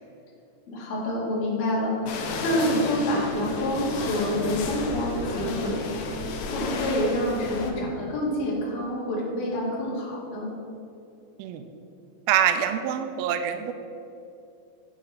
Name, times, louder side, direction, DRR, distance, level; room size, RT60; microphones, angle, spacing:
voice 1, 0.7-10.5, left 1 dB, 65° left, -6 dB, 4.0 m, -27 dB
sound 1, 2.1-7.7, left 3 dB, 80° left, 3.0 m, -32 dB
voice 2, 12.3-13.7, right 9 dB, 85° right, 8 dB, 2.1 m, -25 dB
12.0 x 5.3 x 5.7 m, 2.7 s
omnidirectional pair, 4.9 m